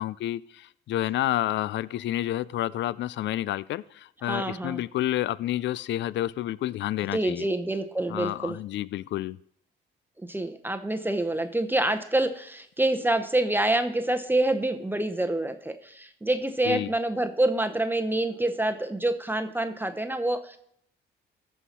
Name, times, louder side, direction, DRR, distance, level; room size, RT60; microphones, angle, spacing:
voice 1, 0.0-7.5 8.1-9.4 16.6-16.9, left 13 dB, 65° left, 0.4 m, -29 dB
voice 2, 4.3-4.8 7.1-8.6 10.3-20.6, right 1 dB, 10° right, 0.8 m, -27 dB
14.0 x 5.6 x 4.3 m
cardioid pair, 90°, 20 cm